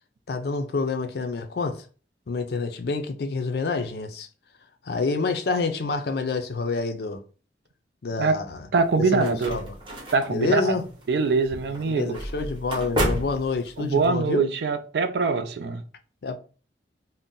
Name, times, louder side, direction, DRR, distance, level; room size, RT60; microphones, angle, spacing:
voice 1, 0.3-1.8 2.3-4.3 4.8-7.2 8.0-8.6 9.0-9.7 10.3-10.9 11.9-14.4 16.2-16.4, left 4 dB, 60° left, 0.4 m, -27 dB
sound 1, 8.7-14.1, right 1 dB, 25° right, 0.7 m, -32 dB
voice 2, 8.7-9.6 10.1-10.7 11.1-12.1 13.8-15.8, right 4 dB, 65° right, 0.4 m, -23 dB
2.6 x 2.1 x 3.7 m
head